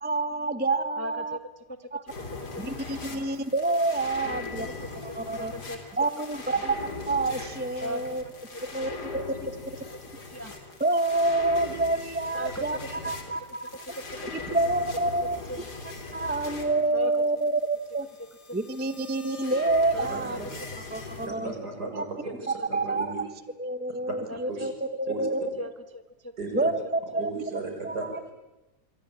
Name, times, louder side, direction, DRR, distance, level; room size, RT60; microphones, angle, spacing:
voice 1, 0.0-1.4 1.9-2.0 2.6-4.7 5.0-5.5 6.0-6.8 7.1-8.2 8.7-9.2 10.8-12.8 13.0-13.6 14.5-15.4 16.1-18.1 18.5-20.4 20.9-21.5 21.9-22.1 22.7-23.2 23.6-25.4 26.5-27.2 27.8-28.1, right 2 dB, 10° right, 12 dB, 0.7 m, -27 dB
voice 2, 1.0-1.4 1.7-2.1 3.1-3.2 4.2-4.7 5.1-5.8 6.2-6.5 7.8-8.6 10.1-10.5 12.3-12.9 13.8-14.2 15.5-15.6 16.9-17.2 19.9-20.4 22.3-22.7 24.3-24.4 25.6-26.3 27.1-27.2, equal, 10° left, 9 dB, 1.3 m, -38 dB
sound 1, 2.1-21.3, left 3 dB, 70° left, 4.0 m, -40 dB
voice 3, 20.1-20.5 21.2-23.2 24.5-24.7 25.1-25.3 26.4-26.7 27.2-28.1, right 3 dB, 65° right, 4 dB, 6.2 m, -35 dB
27.0 x 24.0 x 8.7 m, 1.0 s
omnidirectional pair, 1.8 m